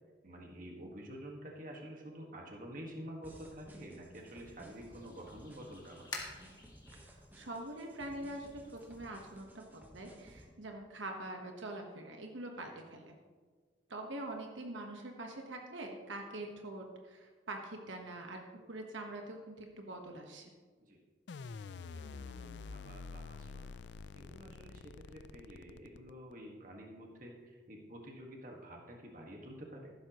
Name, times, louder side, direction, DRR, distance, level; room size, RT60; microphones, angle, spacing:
voice 1, 0.2-6.1 12.6-12.7 20.8-21.0 21.9-23.7 24.1-29.9, equal, 45° right, 0 dB, 1.7 m, -49 dB
sound 1, 3.2-10.5, equal, 10° right, 1.2 m, -57 dB
sound 2, 4.2-9.4, left 3 dB, 20° left, 1.6 m, -51 dB
voice 2, 6.9-13.1 13.9-20.5, right 1 dB, 85° right, 2 dB, 1.3 m, -44 dB
sound 3, 21.3-26.3, left 4 dB, 65° left, 0.4 m, -47 dB
14.5 x 12.0 x 3.1 m, 1.5 s
head